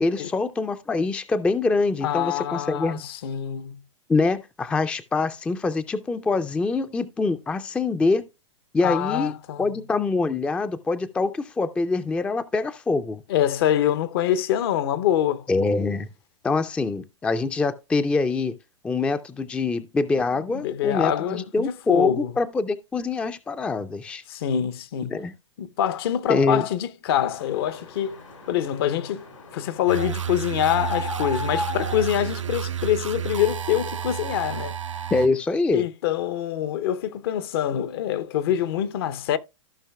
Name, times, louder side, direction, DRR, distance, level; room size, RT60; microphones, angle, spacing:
voice 1, 0.0-3.0 4.1-8.2 8.7-9.3 9.6-13.2 15.5-16.1 16.4-18.5 18.8-24.2 25.1-25.3 26.3-26.6 35.1-35.9, left 3 dB, 5° left, 0.4 m, -24 dB
voice 2, 2.0-3.8 8.8-9.7 13.3-15.5 20.6-22.3 24.3-25.2 25.6-28.2 28.5-29.2 29.5-35.0 35.7-39.4, left 11 dB, 50° left, 0.7 m, -25 dB
sound 1, 27.3-32.9, left 3 dB, 90° left, 3.2 m, -36 dB
sound 2, 29.9-35.3, right 10 dB, 85° right, 0.6 m, -31 dB
14.5 x 5.6 x 2.3 m
figure-of-eight pair, 110°, 16 cm